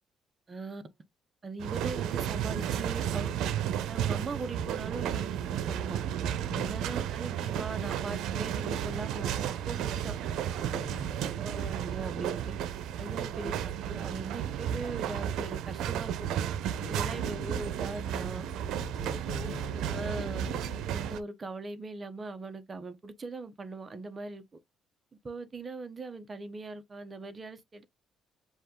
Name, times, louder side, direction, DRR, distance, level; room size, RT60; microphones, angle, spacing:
voice 1, 0.5-0.8 1.4-3.3 3.9-6.0 6.5-10.2 11.2-12.6 13.0-16.3 16.9-18.5 19.8-20.5 20.9-24.4 25.2-27.8, right 3 dB, 25° right, 0.8 m, -40 dB
sound 1, 1.6-21.2, right 9 dB, 80° right, 0.6 m, -33 dB
voice 2, 6.5-6.9 10.7-11.4 16.8-17.3 18.7-20.9, left 5 dB, 30° left, 0.8 m, -45 dB
5.3 x 2.4 x 3.7 m
cardioid pair, 145°, 0 cm